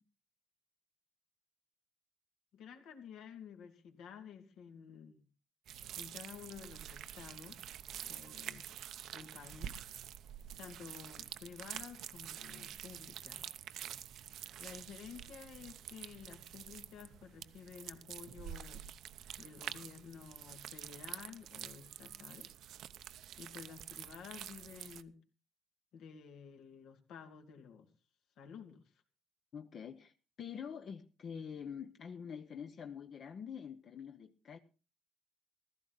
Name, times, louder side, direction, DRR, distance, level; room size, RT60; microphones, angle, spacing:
voice 1, 2.5-5.3 6.0-7.6 8.1-8.8 9.1-9.8 10.6-13.5 14.6-18.9 19.4-22.5 23.4-25.2 25.9-27.9 28.4-28.9, left 7 dB, 75° left, 2.5 m, -52 dB
sound 1, 5.7-25.0, right 11 dB, 70° right, 0.7 m, -48 dB
voice 2, 29.5-30.1 30.4-34.6, left 7 dB, 50° left, 0.9 m, -46 dB
15.5 x 13.5 x 4.0 m
cardioid pair, 115°, 0 cm